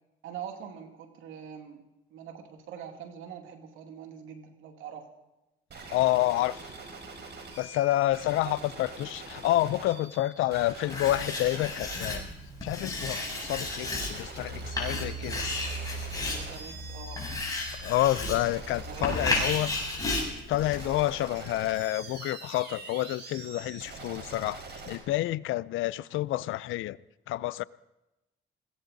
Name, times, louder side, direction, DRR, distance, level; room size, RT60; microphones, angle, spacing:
voice 1, 0.2-5.1 8.4-8.6 16.3-17.3 18.9-19.6, right 8 dB, 90° right, 2.5 m, -43 dB
sound 1, 5.7-25.0, right 4 dB, 60° right, 5.2 m, -45 dB
voice 2, 5.9-6.7 7.6-12.2 12.6-15.4 17.8-19.7 20.5-27.0 27.3-27.6, left 15 dB, 85° left, 0.5 m, -29 dB
Writing, 10.9-21.1, left 2 dB, 15° left, 7.2 m, -33 dB
21.0 x 16.5 x 4.0 m
cardioid pair, 90°, 20 cm